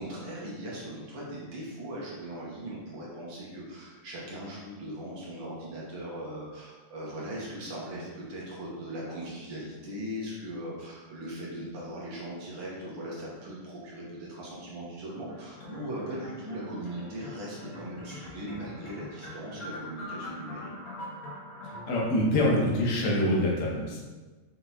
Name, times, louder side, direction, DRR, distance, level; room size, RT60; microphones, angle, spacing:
voice 1, 0.0-20.7, right 1 dB, 55° right, -5 dB, 1.8 m, -39 dB
sound 1, 15.3-22.0, left 2 dB, 40° left, 1.4 m, -43 dB
voice 2, 21.6-24.0, left 1 dB, 85° left, -4 dB, 0.7 m, -25 dB
6.1 x 5.8 x 2.9 m, 1.3 s
omnidirectional pair, 3.6 m